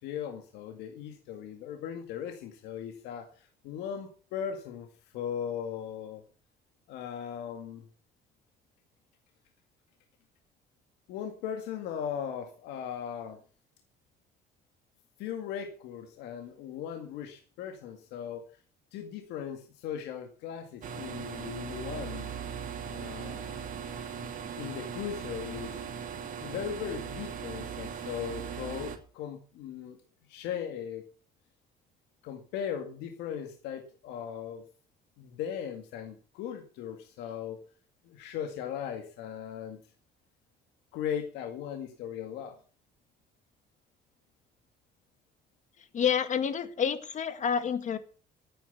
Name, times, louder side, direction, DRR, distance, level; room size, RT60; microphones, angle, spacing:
voice 1, 0.0-4.9 5.1-6.2 6.9-7.8 11.1-13.4 15.2-18.4 18.9-22.3 22.9-23.5 24.6-25.8 26.4-30.0 30.3-31.1 32.2-34.7 35.2-37.6 38.0-39.8 40.9-42.6, left 8 dB, 90° left, 5 dB, 2.1 m, -38 dB
sound 1, 20.8-29.0, right 7 dB, 55° right, 2.6 m, -39 dB
voice 2, 45.9-48.0, left 7 dB, 45° left, 11 dB, 1.9 m, -28 dB
14.0 x 9.2 x 7.0 m, 0.41 s
cardioid pair, 110°, 17 cm